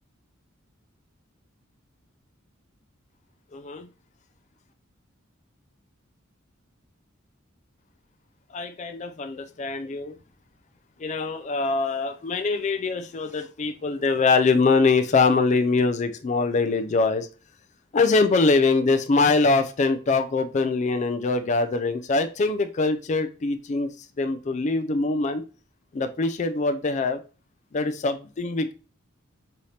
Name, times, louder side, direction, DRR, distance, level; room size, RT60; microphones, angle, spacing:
voice 1, 3.5-3.9 8.5-10.1 11.0-17.3 17.9-23.9 24.2-25.4 25.9-27.2 27.7-28.7, left 3 dB, 35° left, 8 dB, 0.4 m, -23 dB
5.4 x 2.8 x 3.2 m, 0.34 s
head